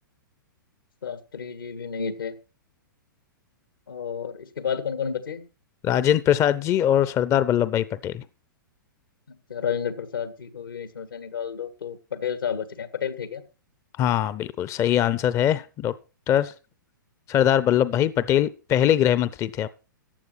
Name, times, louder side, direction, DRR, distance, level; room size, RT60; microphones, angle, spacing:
voice 1, 1.0-2.4 3.9-5.5 9.3-13.4, left 7 dB, 80° left, 1.9 m, -31 dB
voice 2, 5.8-8.2 14.0-15.9 16.3-16.5 17.3-19.7, left 10 dB, 25° left, 0.6 m, -22 dB
14.5 x 9.5 x 4.5 m
hypercardioid pair, 115°, 11 cm